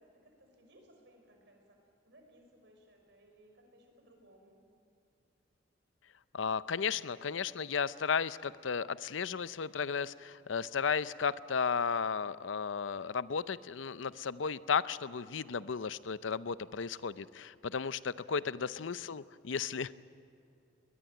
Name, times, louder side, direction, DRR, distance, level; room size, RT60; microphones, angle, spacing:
voice 1, 0.0-4.6 18.4-18.8, right 1 dB, 65° right, 3 dB, 5.4 m, -62 dB
voice 2, 6.3-19.9, left 6 dB, 80° left, 16 dB, 0.6 m, -34 dB
21.0 x 21.0 x 9.1 m, 2.7 s
head